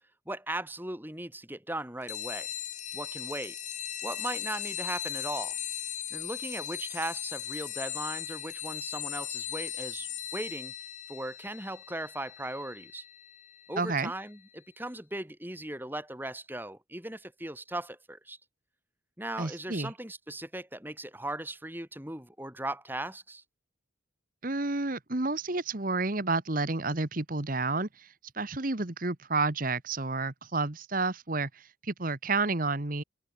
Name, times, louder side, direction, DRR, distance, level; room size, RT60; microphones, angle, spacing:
voice 1, 0.3-2.5 2.9-3.6 4.0-5.6 6.1-10.7 11.1-13.1 13.7-18.4 19.2-23.4, right 1 dB, 10° right, 6.2 m, -38 dB
sound 1, 2.1-14.2, left 10 dB, 40° left, 4.8 m, -38 dB
voice 2, 13.8-14.1 19.4-19.9 24.4-28.1 28.3-33.0, right 3 dB, 45° right, 1.4 m, -30 dB
open air
head